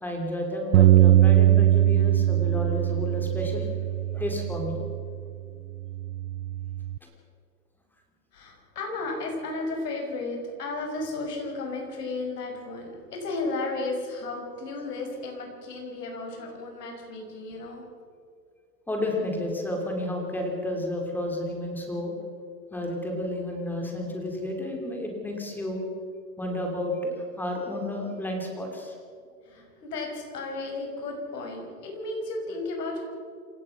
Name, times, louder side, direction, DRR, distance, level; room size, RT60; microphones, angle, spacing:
voice 1, 0.0-3.7 4.1-4.8 18.9-22.1 22.7-25.8 26.4-29.0, left 1 dB, 5° left, 1 dB, 3.1 m, -31 dB
Bass guitar, 0.7-5.2 5.8-7.0, right 13 dB, 85° right, 0.6 m, -21 dB
voice 2, 8.3-17.9 29.4-33.0, left 3 dB, 70° left, 1 dB, 6.2 m, -34 dB
27.5 x 16.0 x 5.9 m, 2.3 s
hypercardioid pair, 150°, 49 cm